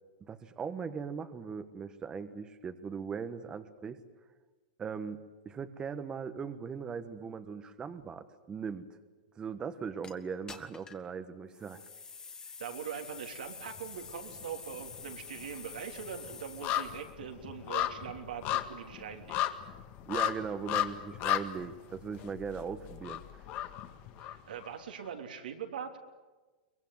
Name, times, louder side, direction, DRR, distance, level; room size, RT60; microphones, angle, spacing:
voice 1, 0.2-4.0 4.8-8.9 9.3-11.8 20.1-23.5, right 6 dB, 20° right, 10 dB, 1.2 m, -39 dB
sound 1, 10.0-10.1 10.5-11.1 11.5-17.1, left 5 dB, 15° left, 1.6 m, -48 dB
voice 2, 12.6-19.4 24.2-26.0, right 8 dB, 85° right, 4 dB, 3.3 m, -42 dB
sound 2, 13.7-14.4 14.7-24.7 25.1-25.2, left 12 dB, 40° left, 1.8 m, -35 dB
23.5 x 21.5 x 9.4 m, 1.3 s
hypercardioid pair, 140°, 5 cm